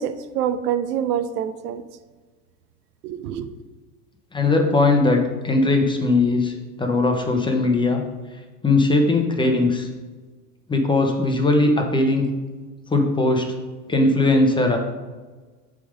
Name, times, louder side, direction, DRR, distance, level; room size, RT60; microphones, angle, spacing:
voice 1, 0.0-1.8 3.0-3.5, right 9 dB, 85° right, 11 dB, 0.7 m, -26 dB
voice 2, 4.3-8.0 8.6-9.9 10.7-12.3 12.9-13.5 13.9-14.8, left 2 dB, 10° left, 3 dB, 0.9 m, -19 dB
6.9 x 3.8 x 5.2 m, 1.3 s
supercardioid pair, 110°, 46 cm